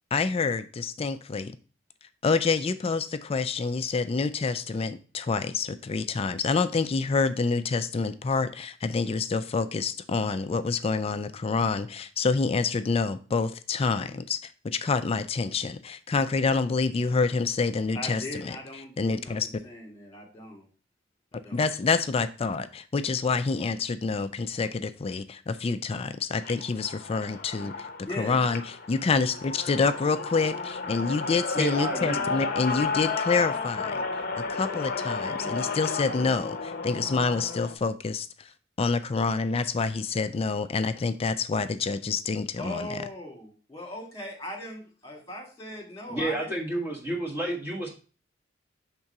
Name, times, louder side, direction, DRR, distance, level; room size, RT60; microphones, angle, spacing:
voice 1, 0.1-1.5 2.2-18.6 19.0-19.5 21.5-27.9 28.2-28.6 28.9-34.0 34.5-38.5 38.8-43.0, left 4 dB, 30° left, 11 dB, 0.3 m, -27 dB
voice 2, 17.9-20.7 21.3-21.6 28.0-28.4 42.6-46.5, left 1 dB, 15° left, 0 dB, 2.0 m, -39 dB
sound 1, 26.3-37.7, left 4 dB, 50° left, 0.7 m, -33 dB
voice 3, 31.5-32.2 46.1-47.9, right 2 dB, 10° right, -2 dB, 1.4 m, -30 dB
5.9 x 3.7 x 5.3 m, 0.36 s
head